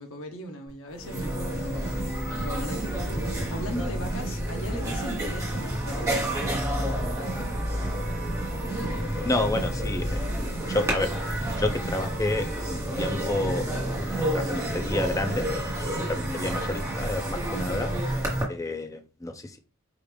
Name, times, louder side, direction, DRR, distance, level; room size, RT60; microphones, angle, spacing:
voice 1, 0.0-7.6, left 1 dB, 65° left, 0.9 m, -39 dB
sound 1, 0.7-0.8 1.0-18.4, right 1 dB, 15° right, 1.2 m, -29 dB
voice 2, 9.2-10.2 10.7-11.1 11.6-15.5 15.9-17.9 18.5-19.6, left 2 dB, 15° left, 0.5 m, -30 dB
4.9 x 2.4 x 3.3 m
head